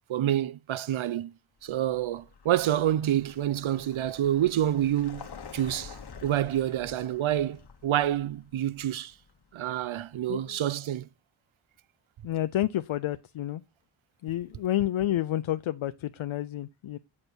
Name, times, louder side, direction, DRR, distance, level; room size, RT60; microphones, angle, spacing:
voice 1, 0.1-1.3 1.6-5.3 5.5-9.1 9.5-11.1, right 12 dB, 75° right, 0.6 m, -28 dB
Vehicle, 1.7-10.5, left 6 dB, 55° left, 1.2 m, -49 dB
voice 2, 12.2-13.6 14.2-17.0, left 13 dB, 75° left, 0.5 m, -30 dB
8.6 x 6.5 x 4.4 m
wide cardioid pair, 95°, 48 cm